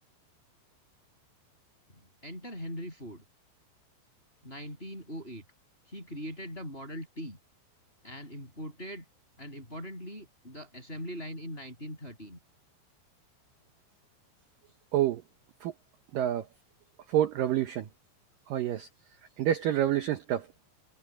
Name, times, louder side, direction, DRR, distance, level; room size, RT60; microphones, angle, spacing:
voice 1, 1.9-3.2 4.4-5.4 5.9-7.4 8.0-9.0 9.4-12.4, equal, 10° left, 6.6 m, -41 dB
voice 2, 16.1-16.4 17.1-17.9 18.5-18.9 19.4-20.5, right 12 dB, 85° right, 1.9 m, -27 dB
omnidirectional pair, 5.4 m